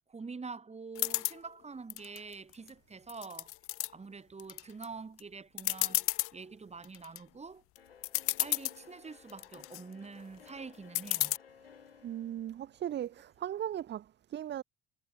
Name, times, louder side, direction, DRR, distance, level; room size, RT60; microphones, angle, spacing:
voice 1, 0.1-3.5 3.9-7.6 8.4-11.4, right 4 dB, 20° right, 6.0 m, -46 dB
sound 1, 0.9-1.4 1.9-2.7 3.1-3.9 4.4-4.8 5.2-5.3 5.6-6.3 6.8-7.2 7.8-7.9 8.0-8.8 9.3-9.8 10.9-11.4, left 19 dB, 50° left, 0.8 m, -32 dB
sound 2, 7.8-13.5, left 7 dB, 80° left, 7.0 m, -58 dB
voice 2, 12.0-14.6, right 11 dB, 35° right, 1.2 m, -38 dB
figure-of-eight pair, 60°, 29 cm